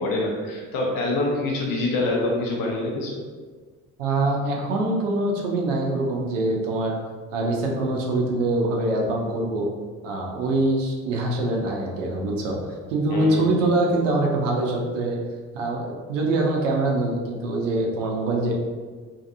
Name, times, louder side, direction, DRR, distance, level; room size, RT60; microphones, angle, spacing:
voice 1, 0.0-3.2 13.1-13.7, left 2 dB, 65° left, -2 dB, 0.7 m, -25 dB
voice 2, 4.0-6.9 7.3-9.7 10.0-12.6 12.9-15.2 15.5-18.6, right 2 dB, 90° right, -1 dB, 0.5 m, -24 dB
2.6 x 2.5 x 2.5 m, 1.5 s
hypercardioid pair, 50°, 37 cm